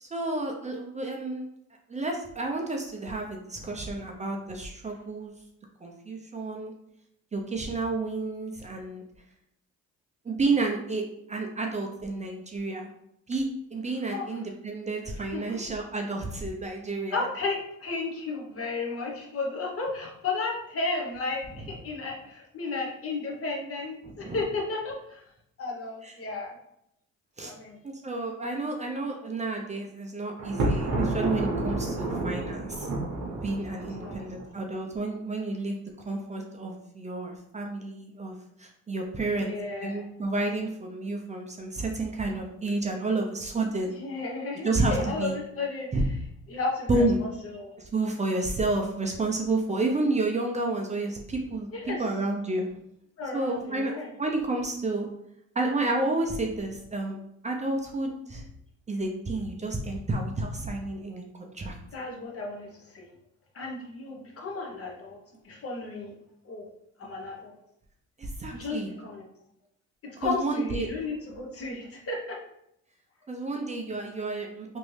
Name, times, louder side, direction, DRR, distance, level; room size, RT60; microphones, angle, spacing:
voice 1, 0.0-1.5 1.9-5.3 5.8-6.7 7.3-9.0 10.2-12.9 13.3-17.3 24.0-24.4 26.0-26.1 27.4-27.5 27.8-32.9 33.4-35.8 36.1-39.5 39.8-43.9 44.6-45.4 45.9-46.1 46.9-47.2 47.8-52.6 53.3-55.1 55.6-57.2 57.4-58.4 58.9-61.7 68.2-68.9 70.2-70.9 73.3-74.8, right 2 dB, 25° right, 1 dB, 0.5 m, -30 dB
voice 2, 15.3-15.6 17.1-21.4 21.7-25.2 25.6-26.6 27.4-27.8 33.9-34.2 39.3-40.0 44.0-45.9 46.5-47.7 51.7-52.0 53.2-54.1 61.9-62.7 62.9-63.1 63.5-65.2 65.4-66.1 66.4-66.6 67.0-67.5 68.5-69.2 70.0-72.4, left 3 dB, 50° left, 0 dB, 0.9 m, -33 dB
Thunder, 30.4-34.5, right 2 dB, 75° right, 0.8 m, -30 dB
3.1 x 2.6 x 3.1 m, 0.77 s
cardioid pair, 90°, 30 cm